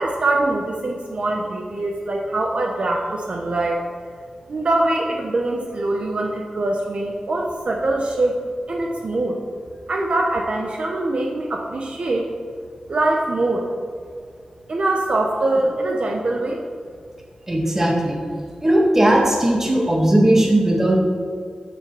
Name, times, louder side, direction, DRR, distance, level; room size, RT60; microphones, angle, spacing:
voice 1, 0.0-3.8 4.5-8.4 8.7-9.4 9.9-12.3 12.9-13.7 14.7-16.6, right 2 dB, 55° right, 0 dB, 1.0 m, -23 dB
voice 2, 17.5-18.2 18.6-21.0, right 1 dB, 20° right, -1 dB, 1.8 m, -17 dB
7.4 x 6.0 x 7.4 m, 2.2 s
wide cardioid pair, 105°, 2 cm